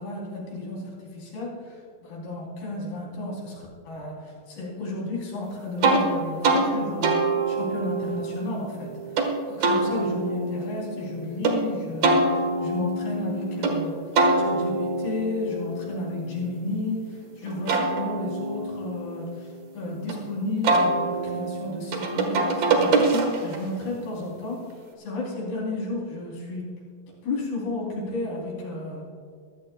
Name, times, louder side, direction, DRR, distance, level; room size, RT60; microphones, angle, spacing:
voice 1, 0.0-7.2 7.5-14.0 14.4-19.5 19.7-24.7 25.0-26.8 27.2-29.0, left 2 dB, 70° left, -4 dB, 5.5 m, -32 dB
sound 1, 5.8-6.0 6.4-6.7 7.0-9.3 9.6-11.5 12.0-13.7 14.2-17.0 17.5-20.1 20.6-23.7, right 3 dB, 55° right, 2.2 m, -25 dB
23.0 x 15.5 x 2.3 m, 2.1 s
omnidirectional pair, 4.9 m